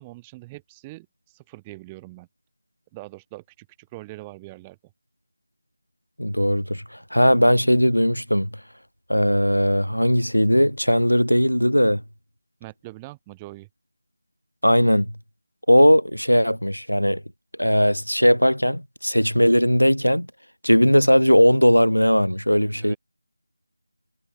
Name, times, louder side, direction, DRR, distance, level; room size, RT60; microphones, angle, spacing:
voice 1, 0.0-2.3 2.9-4.8 12.6-13.7 22.7-23.0, right 21 dB, 10° right, 6.3 m, -42 dB
voice 2, 6.2-6.8 7.1-8.5 9.1-12.0 14.6-15.1 15.7-17.2 17.6-20.3 20.6-22.9, equal, 90° left, 4.3 m, -18 dB
figure-of-eight pair, 165°, 0 cm